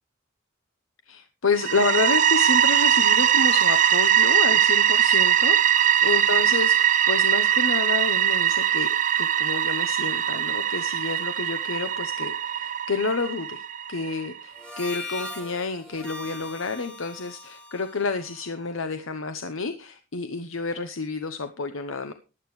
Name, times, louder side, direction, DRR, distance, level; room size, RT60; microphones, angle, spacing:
voice 1, 1.1-8.9 9.2-22.1, left 4 dB, 90° left, 9 dB, 0.9 m, -29 dB
sound 1, 1.5-14.3, right 10 dB, 40° right, 0.5 m, -21 dB
Harmonica, 14.5-19.2, left 2 dB, 5° left, 1.9 m, -40 dB
15.0 x 11.0 x 3.2 m, 0.31 s
head